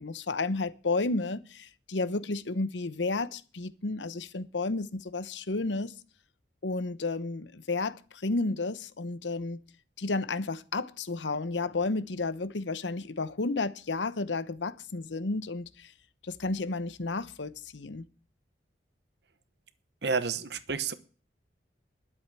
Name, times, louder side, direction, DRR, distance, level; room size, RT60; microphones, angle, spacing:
voice 1, 0.0-5.9 6.6-9.6 10.0-15.9 16.2-18.0, left 3 dB, 85° left, 0.9 m, -32 dB
voice 2, 20.0-20.9, right 5 dB, 65° right, 1.1 m, -30 dB
12.0 x 7.9 x 7.7 m
head